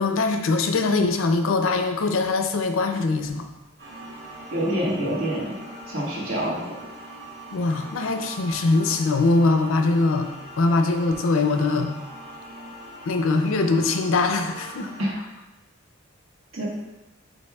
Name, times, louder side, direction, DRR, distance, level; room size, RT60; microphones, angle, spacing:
voice 1, 0.0-3.5 7.5-11.9 13.1-14.9, left 3 dB, 80° left, 6 dB, 0.5 m, -22 dB
sound 1, 3.8-15.0, right 1 dB, 60° right, 1.0 m, -41 dB
voice 2, 4.5-5.6 5.9-6.6 15.0-15.2 16.5-16.7, equal, 80° right, -5 dB, 1.4 m, -26 dB
5.3 x 4.3 x 2.3 m, 1.0 s
head